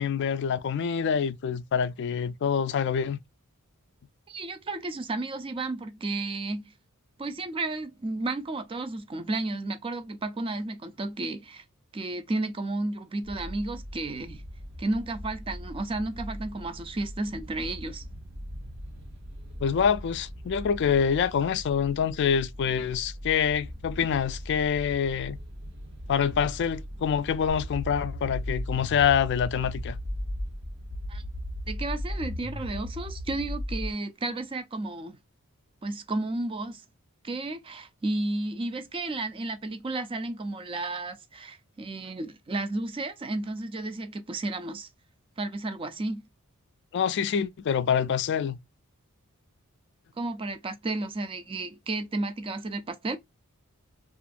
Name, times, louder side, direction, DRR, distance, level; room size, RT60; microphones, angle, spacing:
voice 1, 0.0-3.2 19.6-25.4 26.1-30.0 46.9-48.6, left 7 dB, 50° left, 0.3 m, -26 dB
voice 2, 4.3-6.7 7.2-11.6 11.9-14.4 14.8-18.0 31.1-31.2 31.7-35.2 35.8-36.8 37.2-44.9 45.4-46.2 50.2-53.2, right 2 dB, 25° right, 0.4 m, -32 dB
sound 1, 13.2-32.8, equal, 50° right, 0.8 m, -41 dB
sound 2, 27.5-30.5 30.9-33.9, left 1 dB, 85° right, 1.2 m, -35 dB
3.0 x 2.4 x 2.4 m
head